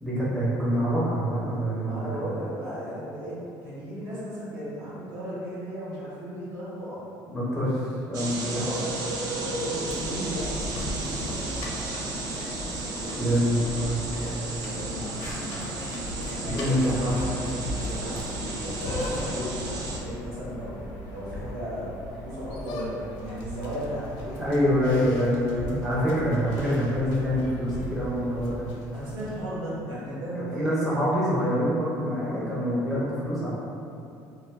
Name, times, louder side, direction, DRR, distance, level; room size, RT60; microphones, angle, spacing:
voice 1, 0.0-2.3 7.3-8.7 13.1-14.0 16.5-17.2 24.4-28.7 30.3-33.6, equal, ahead, -10 dB, 0.5 m, -26 dB
voice 2, 1.8-7.0 8.5-8.8 9.3-12.0 12.9-13.3 13.6-15.5 16.1-19.6 19.9-24.4 24.7-25.0 28.9-30.7, equal, 70° right, -9 dB, 1.0 m, -36 dB
sound 1, 8.1-20.0, right 2 dB, 55° right, 0.4 m, -33 dB
sound 2, 9.8-29.4, left 1 dB, 85° left, 0.5 m, -38 dB
2.3 x 2.1 x 3.3 m, 2.6 s
cardioid pair, 160°, 8 cm